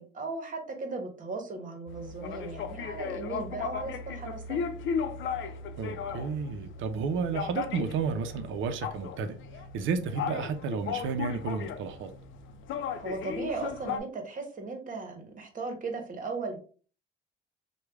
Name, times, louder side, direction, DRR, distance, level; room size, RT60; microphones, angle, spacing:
voice 1, 0.0-4.6 13.0-16.6, right 3 dB, 40° right, 1.1 m, -37 dB
sound 1, 1.9-14.0, left 6 dB, 75° left, 0.5 m, -36 dB
voice 2, 5.8-9.4 9.7-12.1, right 5 dB, 80° right, 0.6 m, -32 dB
3.2 x 2.3 x 3.4 m
cardioid pair, 90°, 20 cm